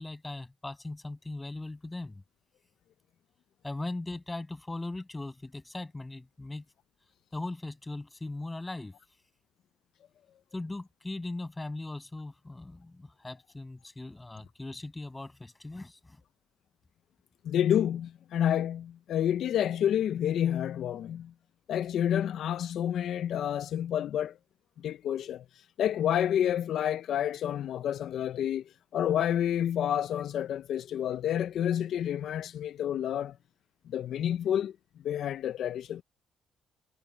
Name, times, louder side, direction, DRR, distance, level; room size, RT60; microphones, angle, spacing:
voice 1, 0.0-2.2 3.6-6.6 7.3-8.9 10.5-16.2, left 2 dB, 15° left, 8.0 m, -39 dB
voice 2, 17.4-21.3 21.7-24.4 24.8-28.6 28.9-33.4 33.9-34.7 35.0-36.0, left 10 dB, 70° left, 0.5 m, -29 dB
cardioid pair, 90°, 0 cm